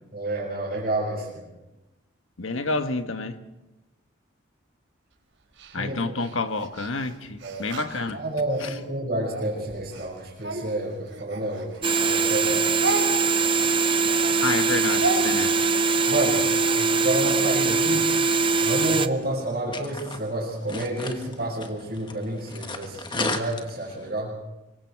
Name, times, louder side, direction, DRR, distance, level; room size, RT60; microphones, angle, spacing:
voice 1, 0.1-1.5 5.8-6.1 7.4-7.6 8.1-11.7 12.0-12.9 16.1-16.5 16.8-18.1 18.6-24.3, right 1 dB, 45° right, 5.9 m, -29 dB
voice 2, 2.4-3.4 5.7-8.2 8.6-8.7 14.4-15.5, left 3 dB, 85° left, 1.4 m, -29 dB
Speech, 5.6-8.7 9.2-12.1 12.3-16.7, right 2 dB, 75° right, 4.6 m, -34 dB
sound 1, 11.8-19.1, right 4 dB, 25° right, 0.6 m, -22 dB
sound 2, 19.2-24.1, left 3 dB, 25° left, 1.4 m, -36 dB
25.5 x 23.0 x 4.7 m
head